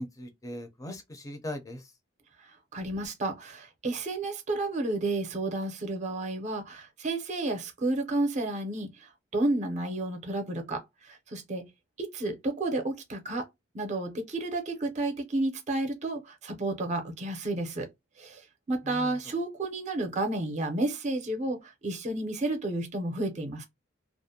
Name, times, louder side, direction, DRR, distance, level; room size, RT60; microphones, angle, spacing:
voice 1, 0.0-1.8 18.9-19.1, left 1 dB, 15° left, 0.5 m, -39 dB
voice 2, 2.7-11.7 12.0-13.5 13.7-17.9 18.2-23.6, right 2 dB, 35° right, 0.6 m, -31 dB
2.4 x 2.1 x 2.7 m
head